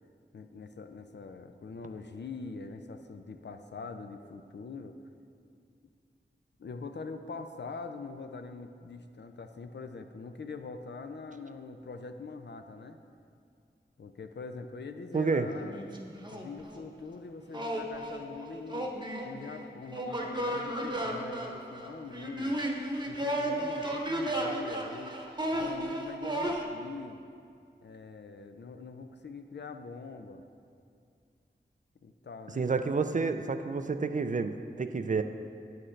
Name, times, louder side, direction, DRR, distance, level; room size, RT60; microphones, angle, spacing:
voice 1, 0.3-5.0 6.6-13.0 14.0-15.9 16.3-18.9 19.2-22.6 23.1-25.2 25.5-27.3 27.8-30.4 32.0-32.7, left 4 dB, 65° left, 7 dB, 0.5 m, -43 dB
sound 1, 15.1-15.2 15.5-16.8 17.5-26.6, right 1 dB, 20° right, 0.9 m, -34 dB
voice 2, 15.1-15.5 32.6-35.2, right 4 dB, 40° right, 8 dB, 0.4 m, -29 dB
8.6 x 7.7 x 3.2 m, 2.3 s
wide cardioid pair, 45°, 20 cm